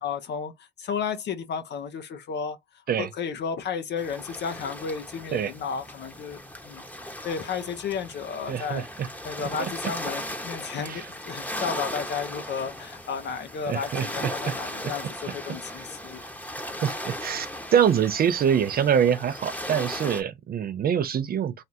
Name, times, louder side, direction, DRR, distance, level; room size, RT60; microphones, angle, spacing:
voice 1, 0.0-0.5 0.8-2.6 3.0-6.8 7.2-8.9 9.2-16.2 16.7-16.8 21.1-21.2, left 6 dB, 60° left, 0.6 m, -33 dB
sound 1, 4.0-20.2, left 1 dB, 5° left, 0.9 m, -37 dB
voice 2, 8.5-9.1 9.6-9.7 10.8-11.1 13.7-14.5 14.8-14.9 16.8-21.5, right 8 dB, 50° right, 0.5 m, -25 dB
3.2 x 2.3 x 2.7 m
cardioid pair, 90°, 20 cm